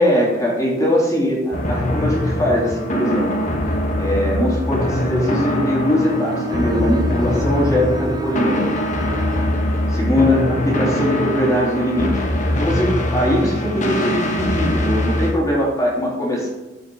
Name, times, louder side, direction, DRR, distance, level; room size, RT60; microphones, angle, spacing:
voice 1, 0.0-3.3 4.0-8.7 9.9-12.1 12.5-16.5, left 1 dB, 20° left, -4 dB, 3.1 m, -20 dB
sound 1, 1.5-15.3, left 1 dB, 40° left, 1.2 m, -22 dB
Bowed string instrument, 5.9-9.6, right 1 dB, 20° right, 0.5 m, -31 dB
13.5 x 5.7 x 4.7 m, 1.1 s
head